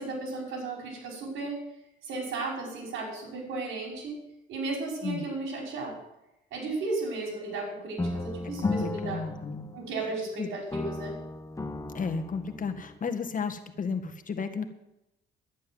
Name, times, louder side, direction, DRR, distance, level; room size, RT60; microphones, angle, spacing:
voice 1, 0.0-1.6 2.0-4.2 4.5-6.0 6.5-9.2 9.7-11.2, right 3 dB, 85° right, 0 dB, 5.3 m, -34 dB
sound 1, 8.0-10.3 10.7-13.0, left 2 dB, 15° left, 1.1 m, -35 dB
voice 2, 8.6-9.7 10.4-10.5 11.9-14.7, left 5 dB, 40° left, 7 dB, 1.8 m, -33 dB
11.5 x 10.5 x 7.9 m, 0.88 s
cardioid pair, 90°, 20 cm